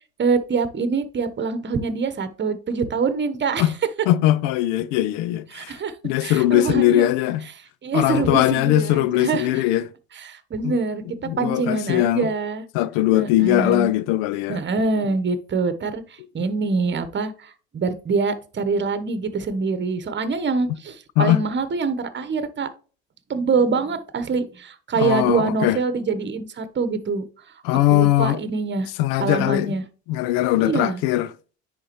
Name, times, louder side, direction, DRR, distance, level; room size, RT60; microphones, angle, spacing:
voice 1, 0.2-3.7 5.5-6.0 6.2-7.1 7.8-9.6 10.1-11.0 11.4-12.6 13.1-13.9 14.5-22.7 23.3-27.2 27.9-28.9 29.2-29.8 30.6-31.0, right 4 dB, 30° right, 1.1 m, -25 dB
voice 2, 4.1-5.7 6.0-7.4 7.9-9.8 10.6-10.8 11.3-12.3 12.7-14.6 21.2-21.4 25.0-25.8 27.6-28.4 29.0-29.7 30.1-31.3, left 14 dB, 65° left, 0.6 m, -20 dB
9.9 x 3.6 x 3.1 m
hypercardioid pair, 65°, 35 cm